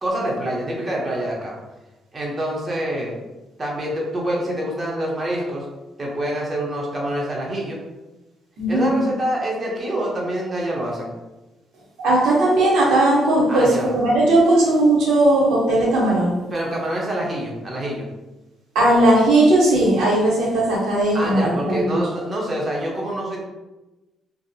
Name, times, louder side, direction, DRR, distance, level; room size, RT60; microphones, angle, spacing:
voice 1, 0.0-1.5 2.1-3.1 3.6-5.7 6.0-7.8 8.7-11.1 13.5-13.9 16.5-18.1 21.1-23.4, right 1 dB, 30° right, -3 dB, 0.7 m, -26 dB
voice 2, 8.6-9.0 12.0-16.4 18.7-22.0, right 1 dB, 85° right, -4 dB, 0.7 m, -17 dB
2.6 x 2.0 x 2.6 m, 1.1 s
cardioid pair, 90°, 0 cm